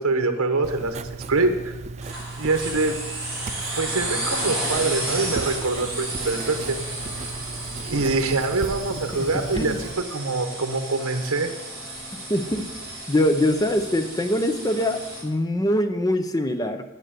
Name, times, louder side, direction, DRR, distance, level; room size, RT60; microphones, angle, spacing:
voice 1, 0.0-1.7 2.4-2.9 3.8-6.8 7.9-11.5, right 3 dB, 75° right, 6 dB, 1.1 m, -24 dB
Writing, 0.6-9.9, right 3 dB, 30° right, 0.4 m, -36 dB
sound 1, 2.0-15.2, right 1 dB, 5° right, 3.8 m, -33 dB
voice 2, 9.3-9.8 12.3-12.6 13.1-16.8, left 1 dB, 15° left, 8 dB, 0.6 m, -23 dB
9.3 x 6.5 x 7.7 m, 1.1 s
head